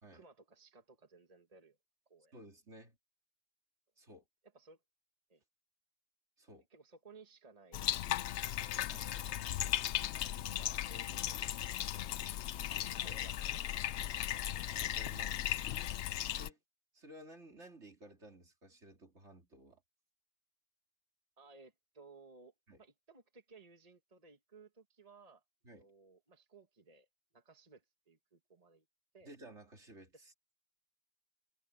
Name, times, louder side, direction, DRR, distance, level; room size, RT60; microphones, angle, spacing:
voice 1, 0.1-1.8 2.1-2.4 4.5-4.8 5.3-5.4 6.7-8.7 9.1-9.7 10.5-12.2 12.8-14.0 21.4-25.4 25.8-27.1 27.3-28.8 29.1-29.3 30.1-30.3, right 4 dB, 30° right, 1.7 m, -60 dB
voice 2, 2.3-3.0 4.0-4.2 6.4-6.7 8.9-9.1 12.9-13.2 14.8-15.6 16.4-16.6 16.9-19.8 22.7-22.8 25.6-25.9 29.2-30.3, right 1 dB, 65° right, 3.6 m, -55 dB
Bathtub (filling or washing), 7.7-16.5, left 12 dB, 70° left, 0.8 m, -37 dB
omnidirectional pair, 1.3 m